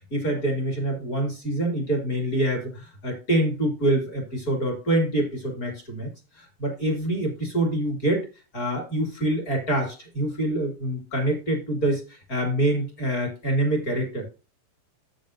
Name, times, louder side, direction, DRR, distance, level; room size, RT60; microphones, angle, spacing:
voice 1, 0.1-6.1 6.3-8.2 8.5-14.2, right 1 dB, 30° left, 3 dB, 2.3 m, -26 dB
10.0 x 8.0 x 2.6 m, 0.29 s
omnidirectional pair, 4.4 m